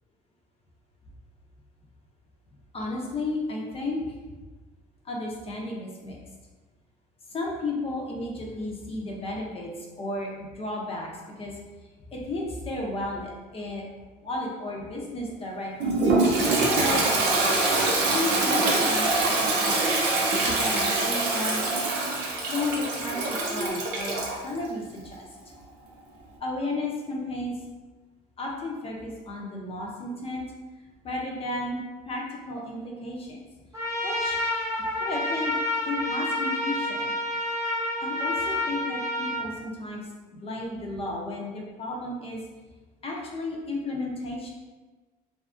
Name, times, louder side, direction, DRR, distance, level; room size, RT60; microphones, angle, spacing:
voice 1, 2.7-4.2 5.0-6.2 7.3-11.1 11.4-11.6 12.1-13.8 14.2-16.0 16.7-17.0 17.7-19.9 20.4-21.7 22.5-25.3 26.4-27.5 28.4-30.4 31.0-33.4 34.0-34.4 35.0-35.6 35.8-37.1 38.0-40.0 40.3-42.4 43.0-44.5, left 2 dB, 35° left, -2 dB, 0.6 m, -33 dB
Toilet flush, 15.8-24.4, right 2 dB, 85° right, 0.6 m, -24 dB
Trumpet, 33.7-39.4, left 1 dB, 15° right, 0.8 m, -29 dB
2.6 x 2.4 x 2.5 m, 1.3 s
cardioid pair, 110°, 17 cm